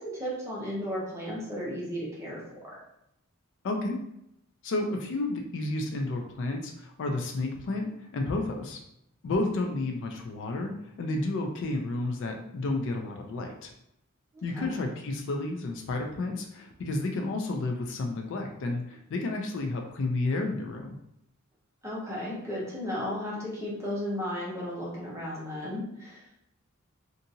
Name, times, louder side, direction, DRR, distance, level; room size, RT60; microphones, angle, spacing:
voice 1, 0.0-2.7 9.6-9.7 14.3-14.8 21.8-26.2, equal, 15° right, -6 dB, 0.8 m, -35 dB
voice 2, 3.6-4.0 4.6-8.8 9.2-13.7 14.4-21.0, left 2 dB, 55° left, 3 dB, 0.3 m, -31 dB
2.7 x 2.5 x 2.6 m, 0.79 s
head